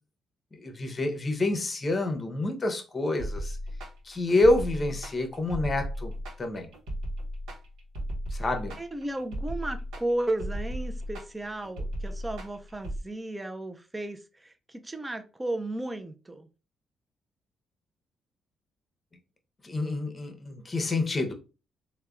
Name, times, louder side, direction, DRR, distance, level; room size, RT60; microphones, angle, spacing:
voice 1, 0.6-3.6 4.1-6.1 6.4-6.7 8.3-8.7 19.6-21.3, left 2 dB, 30° left, 0.7 m, -27 dB
sound 1, 3.2-13.0, equal, 85° right, 0.8 m, -35 dB
voice 2, 8.8-16.5, right 1 dB, 15° right, 0.4 m, -34 dB
3.4 x 2.1 x 2.3 m
cardioid pair, 90°, 0 cm